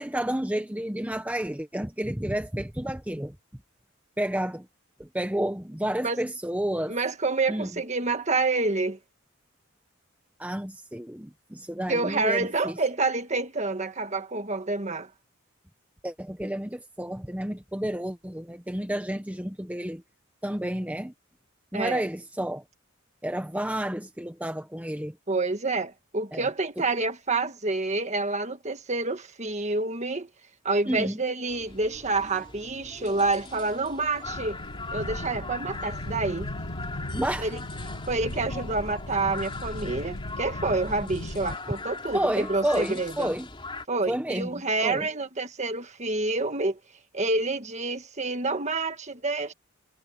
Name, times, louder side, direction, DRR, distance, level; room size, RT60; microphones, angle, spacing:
voice 1, 0.0-3.3 4.2-4.7 5.0-7.0 7.5-7.7 10.4-12.8 16.0-20.0 20.4-21.1 21.7-22.6 23.2-25.1 26.3-26.4 30.9-31.2 37.1-37.5 42.1-43.5 44.1-44.5 44.8-45.1, right 1 dB, 5° right, 1.0 m, -30 dB
voice 2, 6.9-9.0 11.9-15.1 21.7-22.0 25.3-30.3 30.6-34.6 34.9-36.5 37.4-37.6 38.1-43.3 43.9-46.8 47.1-49.5, right 3 dB, 35° right, 1.6 m, -28 dB
sound 1, 31.5-43.9, left 3 dB, 25° left, 3.8 m, -41 dB
sound 2, 34.2-41.6, left 1 dB, 70° left, 2.4 m, -37 dB
head